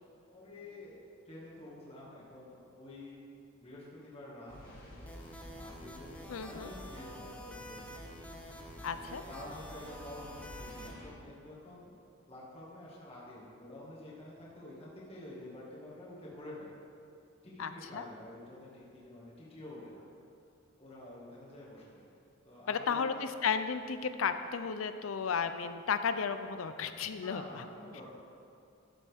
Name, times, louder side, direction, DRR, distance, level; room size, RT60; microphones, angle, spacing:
voice 1, 0.3-3.2 3.6-5.1 5.5-7.9 8.9-10.3 10.6-12.0 12.3-16.8 17.4-20.1 20.8-22.2 22.4-23.2 27.1-28.1, left 1 dB, 30° left, -7 dB, 1.9 m, -49 dB
sound 1, 4.5-11.1, equal, 45° left, 2.3 m, -50 dB
sound 2, 5.1-10.9, equal, 5° left, 0.7 m, -49 dB
voice 2, 6.3-6.7 8.8-9.2 17.6-18.0 22.7-27.6, left 6 dB, 85° left, 10 dB, 0.5 m, -34 dB
12.5 x 7.3 x 3.5 m, 2.5 s
head